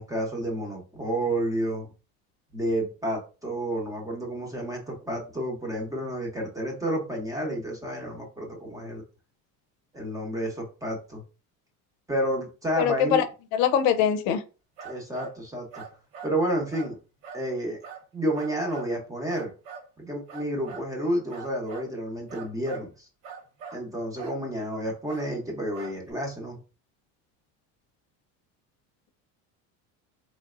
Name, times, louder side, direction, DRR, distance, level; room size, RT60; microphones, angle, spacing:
voice 1, 0.0-1.9 2.5-9.0 9.9-11.2 12.1-13.2 14.8-15.8 16.2-17.0 17.3-17.8 18.1-19.5 20.0-23.1 23.7-26.6, right 1 dB, 10° right, 0.9 m, -30 dB
voice 2, 12.8-13.2 13.5-14.4, left 8 dB, 85° left, 0.7 m, -22 dB
sound 1, 14.8-15.4 15.7-16.4 16.7-16.9 17.2-17.5 17.8-18.0 18.4-18.9 19.3-19.9 20.3-20.9 21.3-21.9 22.3-22.9 23.2-23.8 24.2-24.4 25.1-25.3 25.7-26.1, right 6 dB, 65° right, 1.2 m, -42 dB
3.9 x 3.2 x 2.5 m
cardioid pair, 155°, 38 cm